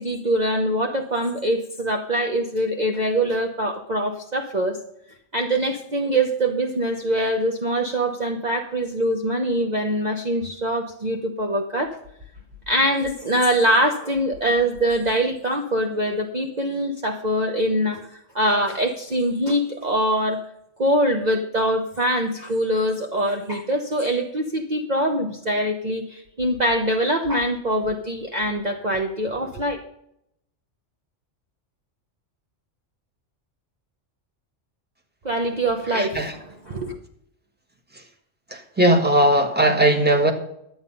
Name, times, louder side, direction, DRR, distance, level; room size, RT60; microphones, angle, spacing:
voice 1, 0.0-4.8 5.3-12.0 12.7-20.4 20.8-29.8 35.2-36.2 36.7-37.0, right 1 dB, 35° right, 2 dB, 1.1 m, -23 dB
voice 2, 35.9-36.3 37.9-38.0 38.5-40.3, right 1 dB, 10° right, 4 dB, 1.5 m, -19 dB
12.0 x 9.0 x 5.5 m, 0.76 s
omnidirectional pair, 1.3 m